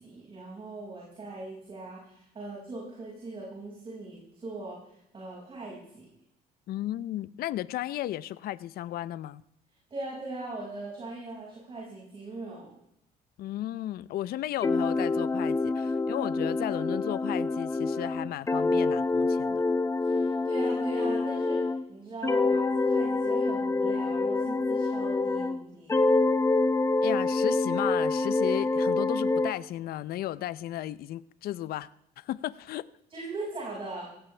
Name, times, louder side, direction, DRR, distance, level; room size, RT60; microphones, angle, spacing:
voice 1, 0.0-6.1 9.9-12.7 20.0-26.0 33.1-34.1, right 2 dB, 30° right, 5.7 m, -40 dB
voice 2, 6.7-9.4 13.4-19.6 27.0-31.9 32.2-32.8, left 13 dB, 65° left, 0.6 m, -34 dB
sound 1, 14.6-21.8 22.2-25.6 25.9-29.6, left 3 dB, 15° left, 0.7 m, -26 dB
17.5 x 16.0 x 3.3 m
cardioid pair, 110°, 17 cm